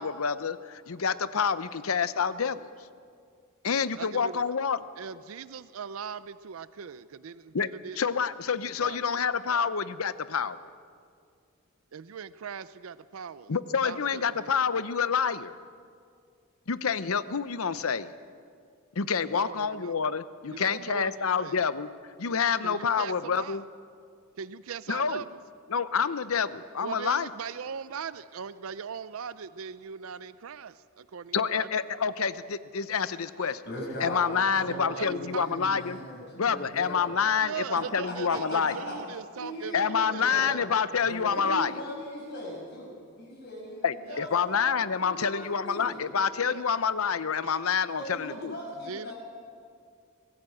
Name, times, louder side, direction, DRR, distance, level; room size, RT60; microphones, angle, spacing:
voice 1, 0.0-2.7 3.6-4.8 7.5-7.7 8.0-10.6 13.5-15.6 16.7-18.1 19.0-21.9 22.2-23.6 24.9-25.2 25.7-27.3 31.3-33.6 34.0-36.0 36.4-38.7 39.7-41.8 43.8-48.6, left 6 dB, 90° left, 15 dB, 0.8 m, -28 dB
voice 2, 4.0-4.4 5.0-8.1 8.8-9.1 9.4-9.7 11.9-13.5 13.8-14.9 19.3-19.9 20.5-21.6 22.6-23.6 24.4-25.4 26.8-31.7 34.7-35.5 37.4-40.6 44.1-44.3 46.4-46.6 47.4-47.6 48.9-49.1, right 6 dB, 75° right, 16 dB, 0.5 m, -40 dB
voice 3, 33.7-37.2 38.0-39.0 39.4-40.6 41.0-42.9 43.2-44.6 45.0-46.0 47.9-49.1, equal, 55° left, -3 dB, 6.0 m, -39 dB
24.0 x 15.0 x 7.8 m, 2.2 s
head